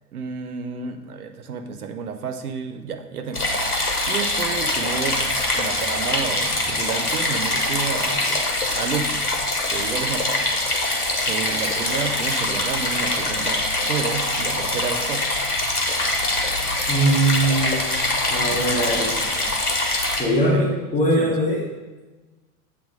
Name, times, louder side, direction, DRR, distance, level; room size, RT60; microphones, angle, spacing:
voice 1, 0.1-3.5 4.0-8.4 8.7-9.3 9.7-10.5 11.2-15.3 18.5-19.6 20.5-20.6 21.1-21.4, right 6 dB, 75° right, 7 dB, 0.7 m, -31 dB
sound 1, 3.3-20.2, left 2 dB, 85° left, 1.1 m, -24 dB
voice 2, 16.9-17.8 18.3-19.1 20.2-21.6, right 1 dB, 15° left, -5 dB, 1.3 m, -21 dB
7.9 x 3.4 x 5.1 m, 1.2 s
figure-of-eight pair, 80°, 44 cm